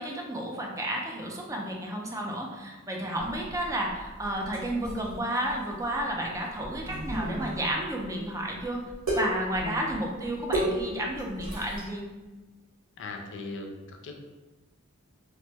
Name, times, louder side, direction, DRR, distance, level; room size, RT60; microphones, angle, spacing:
voice 1, 0.0-8.8 9.1-12.0, right 1 dB, 15° right, -1 dB, 0.4 m, -32 dB
sound 1, 3.2-11.9, right 1 dB, 85° right, 1.1 m, -35 dB
voice 2, 13.0-14.2, left 3 dB, 60° left, 2 dB, 0.4 m, -38 dB
2.9 x 2.1 x 3.3 m, 1.2 s
head